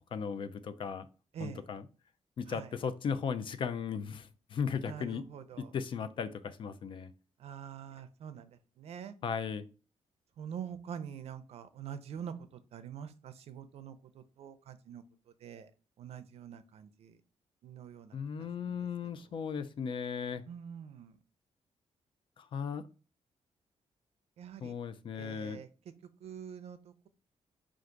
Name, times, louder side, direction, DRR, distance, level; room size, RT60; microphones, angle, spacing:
voice 1, 0.1-1.1 1.4-1.9 2.4-5.2 5.6-7.1 9.2-9.6 18.1-20.4 22.4-22.8 24.6-25.6, left 6 dB, 45° left, 11 dB, 0.4 m, -36 dB
voice 2, 4.9-5.7 7.4-8.5 8.8-9.1 10.4-12.3 12.7-15.0 15.4-15.7 16.0-17.1 17.6-18.2 18.7-18.8 20.5-21.1 24.4-24.7 25.1-25.7 26.2-26.8, right 8 dB, 60° right, 11 dB, 0.5 m, -45 dB
4.6 x 2.5 x 3.8 m, 0.35 s
wide cardioid pair, 165°, 12 cm